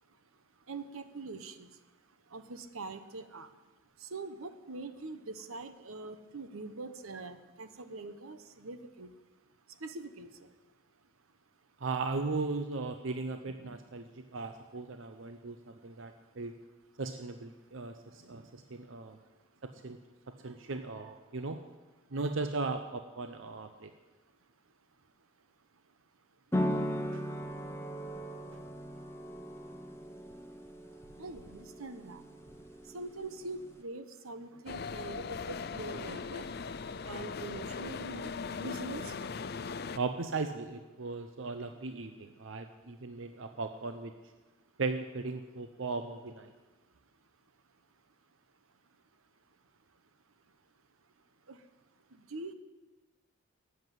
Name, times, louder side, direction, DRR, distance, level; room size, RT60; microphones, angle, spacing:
voice 1, 0.7-1.7 2.3-3.5 4.0-9.1 9.8-10.3 31.2-32.2 32.9-36.4 37.1-38.3 38.6-39.1 51.5-51.6 52.3-52.5, right 3 dB, 85° right, 10 dB, 1.0 m, -43 dB
voice 2, 11.8-16.5 17.0-19.2 19.6-20.0 20.4-21.6 22.1-23.9 27.1-27.2 39.9-44.1 44.8-46.5, right 3 dB, 65° right, 7 dB, 0.7 m, -37 dB
sound 1, 26.5-33.8, equal, 10° left, 0.8 m, -38 dB
sound 2, 34.7-40.0, left 5 dB, 50° left, 0.5 m, -39 dB
13.5 x 8.0 x 9.2 m, 1.2 s
head